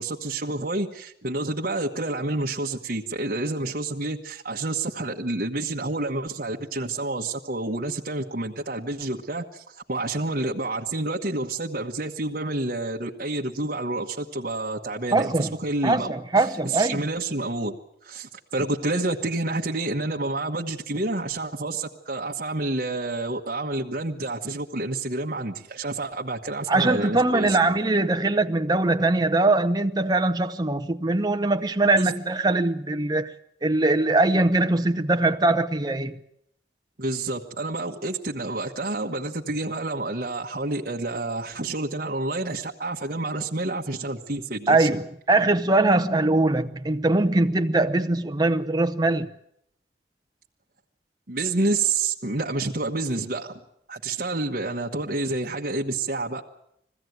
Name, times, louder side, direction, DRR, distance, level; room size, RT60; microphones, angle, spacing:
voice 1, 0.0-17.7 18.0-27.6 32.0-32.1 37.0-45.0 51.3-53.5 53.9-56.4, right 2 dB, 55° right, 1.2 m, -29 dB
voice 2, 15.1-15.6 15.8-17.0 26.7-33.3 33.6-36.2 44.7-49.3, right 2 dB, 25° right, 0.8 m, -22 dB
21.0 x 16.0 x 9.4 m
head